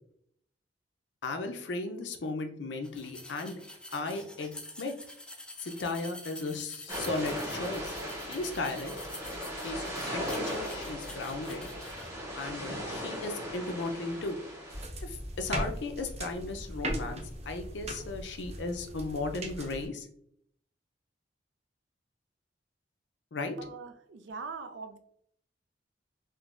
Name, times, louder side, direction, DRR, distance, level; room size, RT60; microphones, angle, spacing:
voice 1, 1.2-3.6 3.9-4.9 5.6-7.9 8.2-9.0 9.6-9.8 10.1-11.7 12.4-14.4 15.0-20.1 23.3-23.5, left 3 dB, 90° left, 6 dB, 0.5 m, -36 dB
sound 1, 2.8-12.1, left 1 dB, 5° left, 0.3 m, -47 dB
sound 2, 6.9-14.8, equal, 15° right, 1.0 m, -38 dB
sound 3, 14.7-19.9, right 1 dB, 40° right, 0.7 m, -38 dB
voice 2, 23.6-25.0, right 4 dB, 85° right, 9 dB, 0.4 m, -42 dB
3.7 x 2.6 x 2.5 m, 0.67 s
head